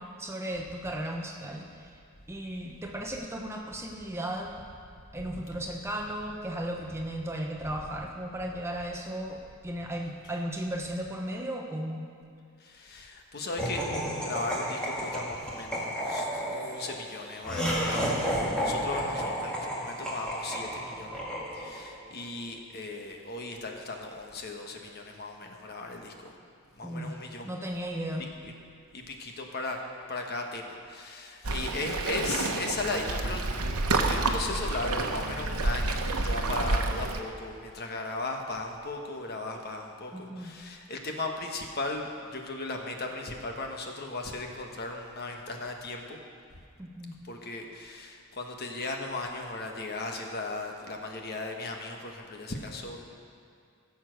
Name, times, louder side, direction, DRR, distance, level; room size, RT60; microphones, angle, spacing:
voice 1, 0.0-1.9 2.3-4.6 5.1-12.0 26.8-28.3 40.1-40.5 46.8-47.2, right 1 dB, 10° right, 1 dB, 0.9 m, -35 dB
voice 2, 12.6-18.3 18.6-21.2 21.5-26.3 26.7-27.5 28.2-28.5 28.9-29.8 30.1-33.4 33.7-46.2 47.2-53.0, left 2 dB, 45° left, 2 dB, 1.2 m, -37 dB
Laughter, 13.6-22.0, equal, 5° left, 2.0 m, -32 dB
Waves surf, 31.4-37.2, right 2 dB, 80° right, 1.0 m, -29 dB
16.0 x 7.2 x 6.3 m, 2.4 s
head